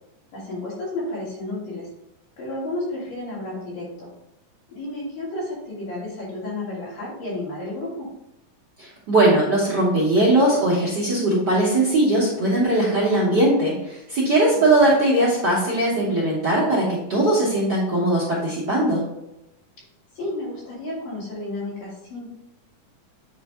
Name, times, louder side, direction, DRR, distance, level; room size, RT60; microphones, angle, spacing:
voice 1, 0.3-1.9 2.4-4.1 4.7-8.1 14.8-14.9 20.1-22.3, left 2 dB, 90° left, -6 dB, 4.2 m, -32 dB
voice 2, 8.8-19.0, right 1 dB, 50° right, -6 dB, 1.3 m, -20 dB
8.7 x 3.3 x 3.6 m, 0.87 s
omnidirectional pair, 3.8 m